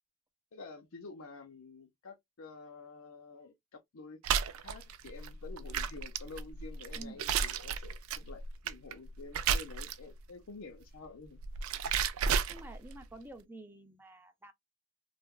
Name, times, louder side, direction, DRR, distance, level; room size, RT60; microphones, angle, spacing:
voice 1, 0.5-4.2 4.6-11.4, left 3 dB, 85° left, 0.6 m, -49 dB
sound 1, 4.2-10.2 11.2-13.0, right 7 dB, 90° right, 0.4 m, -33 dB
voice 2, 12.5-14.5, right 2 dB, 10° right, 0.4 m, -49 dB
3.3 x 2.2 x 2.3 m
head